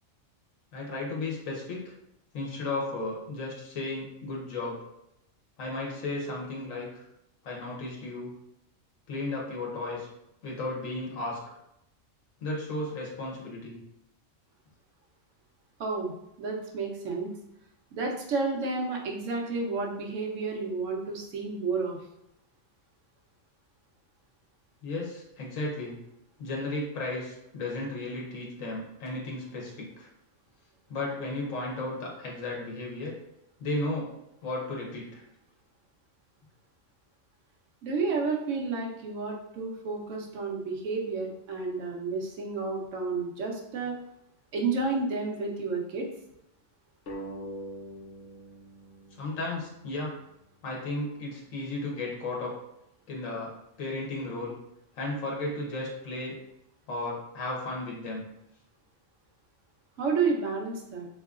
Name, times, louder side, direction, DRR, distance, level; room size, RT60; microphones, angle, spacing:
voice 1, 0.7-1.8 2.3-4.8 5.6-7.0 7.4-8.3 9.1-10.1 10.4-11.4 12.4-13.8 24.8-26.0 26.4-30.1 30.9-33.1 33.6-34.1 34.4-35.2 49.2-50.1 50.6-52.5 53.1-53.5 53.8-54.6 55.0-56.4 56.9-58.2, left 2 dB, 90° left, -2 dB, 1.3 m, -34 dB
voice 2, 15.8-16.1 16.4-17.3 17.9-22.0 37.8-43.9 44.5-46.1 60.0-61.1, right 4 dB, 75° right, 1 dB, 1.1 m, -31 dB
sound 1, 47.1-50.3, right 1 dB, 70° left, 1.0 m, -43 dB
3.7 x 3.1 x 2.4 m, 0.82 s
omnidirectional pair, 1.3 m